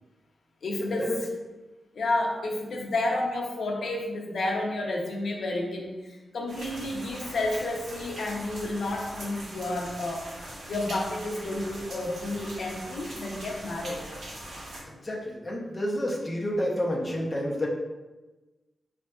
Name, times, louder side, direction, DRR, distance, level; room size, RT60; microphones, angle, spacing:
voice 1, 0.6-1.3 1.9-10.3 10.6-14.1, left 2 dB, 65° left, 0 dB, 0.5 m, -31 dB
sound 1, 6.5-14.8, right 1 dB, 85° right, 0.8 m, -41 dB
voice 2, 14.9-17.7, left 1 dB, 20° left, -2 dB, 0.5 m, -30 dB
4.1 x 2.5 x 2.2 m, 1.2 s
wide cardioid pair, 170°, 0 cm